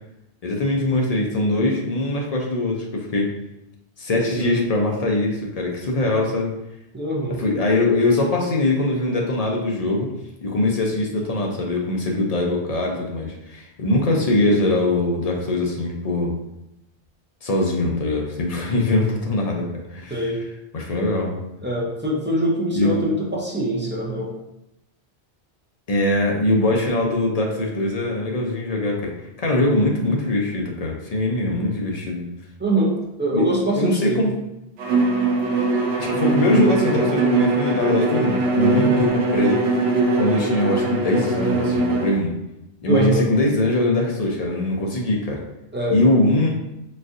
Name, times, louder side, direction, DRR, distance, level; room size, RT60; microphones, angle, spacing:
voice 1, 0.4-3.3 4.0-6.5 7.4-10.1 10.4-16.3 17.4-20.3 20.7-21.3 22.7-22.9 25.9-29.1 29.4-32.2 33.3-34.3 36.0-39.6 40.1-42.3 42.8-45.4 45.9-46.5, left 2 dB, 50° left, -1 dB, 0.5 m, -22 dB
voice 2, 4.2-4.6 6.9-7.4 20.1-20.4 21.6-24.3 32.6-34.3 42.9-43.3 45.7-46.0, right 1 dB, 20° right, -4 dB, 0.3 m, -23 dB
Bowed string instrument, 34.8-42.2, right 3 dB, 80° right, 0.9 m, -21 dB
4.0 x 2.6 x 2.5 m, 0.87 s
omnidirectional pair, 1.1 m